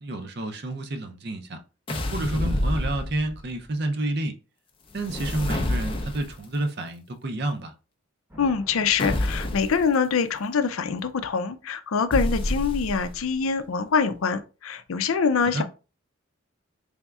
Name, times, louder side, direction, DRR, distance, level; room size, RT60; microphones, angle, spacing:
voice 1, 0.0-1.6 2.1-4.3 4.9-7.7 15.5-15.6, right 1 dB, 50° right, 0.6 m, -29 dB
sound 1, 1.9-3.5 4.9-6.4 9.0-9.8 12.1-13.2, left 1 dB, 25° left, 0.5 m, -28 dB
sound 2, 8.3-10.4, equal, 10° right, 0.8 m, -48 dB
voice 2, 8.4-15.6, left 5 dB, 85° left, 0.5 m, -24 dB
4.1 x 3.5 x 2.3 m
head